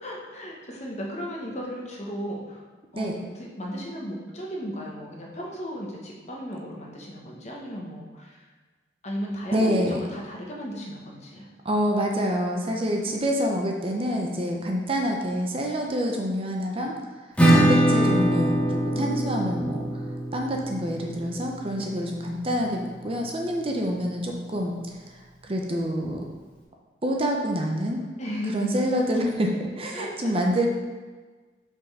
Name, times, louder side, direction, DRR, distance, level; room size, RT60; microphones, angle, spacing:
voice 1, 0.0-2.6 2.9-8.5 9.0-11.4 18.9-19.3 21.7-22.1 28.2-28.8 29.9-30.3, equal, 40° left, -2 dB, 1.0 m, -35 dB
voice 2, 9.5-10.0 11.6-17.0 17.5-19.9 20.3-24.7 25.4-26.2 27.0-28.0 28.5-30.7, equal, 30° right, 0 dB, 0.7 m, -27 dB
Acoustic guitar / Strum, 17.4-22.8, right 1 dB, 5° left, 0.9 m, -24 dB
5.4 x 4.0 x 4.7 m, 1.4 s
head